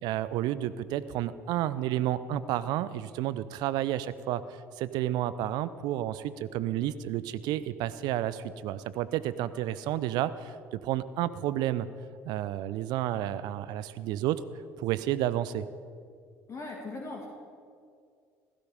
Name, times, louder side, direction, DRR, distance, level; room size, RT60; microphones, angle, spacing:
voice 1, 0.0-4.4 4.8-11.9 12.2-14.4 14.8-15.7, right 13 dB, 60° right, 15 dB, 0.7 m, -31 dB
voice 2, 16.5-17.3, left 2 dB, 40° left, 0 dB, 2.3 m, -39 dB
16.0 x 14.5 x 5.0 m, 2.2 s
figure-of-eight pair, 55°, 8 cm